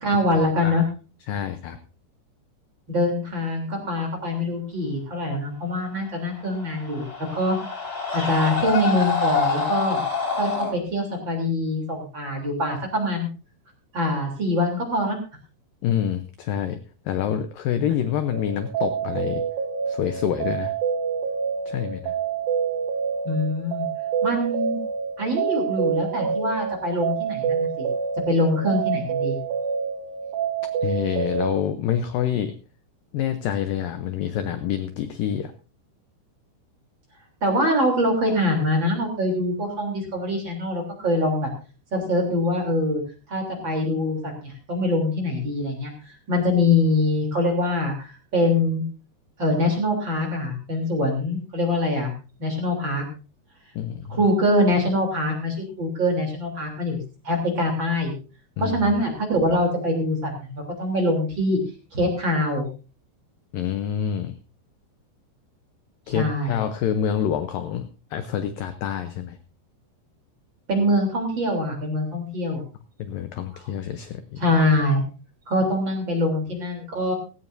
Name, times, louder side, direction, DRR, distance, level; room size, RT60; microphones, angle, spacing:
voice 1, 0.0-0.8 2.9-7.1 7.3-7.6 8.1-10.0 10.4-13.3 13.9-15.2 23.2-23.9 24.2-24.8 25.2-27.9 28.3-29.4 37.4-41.5 41.9-43.0 43.3-48.8 49.4-52.1 52.4-53.0 54.1-58.1 58.6-61.6 61.9-62.7 66.1-66.6 70.7-72.6 74.4-75.0 75.5-77.1, left 1 dB, 30° right, 2 dB, 3.4 m, -24 dB
voice 2, 1.3-1.8 15.8-16.8 17.1-19.4 19.9-20.7 21.7-22.2 30.8-32.6 33.1-35.5 53.8-54.2 58.6-58.8 63.5-64.4 66.1-69.4 73.0-74.4, left 9 dB, 85° left, 9 dB, 1.9 m, -27 dB
Screaming, 6.3-10.7, left 5 dB, 20° left, 4.5 m, -26 dB
sound 1, 18.3-31.6, right 7 dB, 70° right, 2.5 m, -27 dB
17.0 x 16.5 x 2.6 m, 0.33 s
omnidirectional pair, 5.1 m